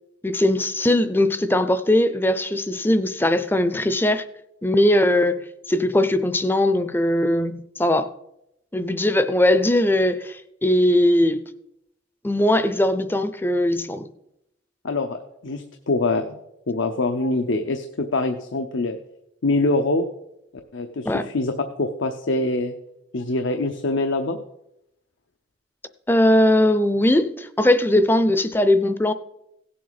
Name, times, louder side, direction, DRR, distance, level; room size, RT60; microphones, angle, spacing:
voice 1, 0.2-4.2 4.6-8.1 8.7-11.4 12.2-14.1 21.1-21.2 26.1-29.1, left 1 dB, 10° left, 0.5 m, -20 dB
voice 2, 14.8-16.4 16.7-19.0 19.4-20.0 20.7-22.7 23.1-24.4, left 2 dB, 85° left, 0.7 m, -24 dB
17.0 x 7.6 x 4.1 m
head